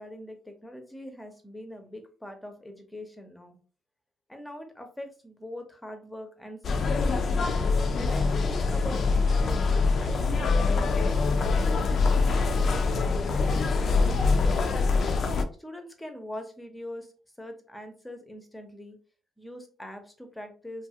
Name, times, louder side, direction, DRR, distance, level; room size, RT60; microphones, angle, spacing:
voice 1, 0.0-3.6 4.3-7.2 7.9-11.2 12.0-15.2 15.6-17.1 17.4-19.0 19.4-20.9, left 1 dB, 10° left, 5 dB, 0.7 m, -43 dB
sound 1, 6.6-15.4, left 4 dB, 55° left, 0.4 m, -24 dB
2.7 x 2.3 x 2.7 m, 0.40 s
cardioid pair, 90°, 0 cm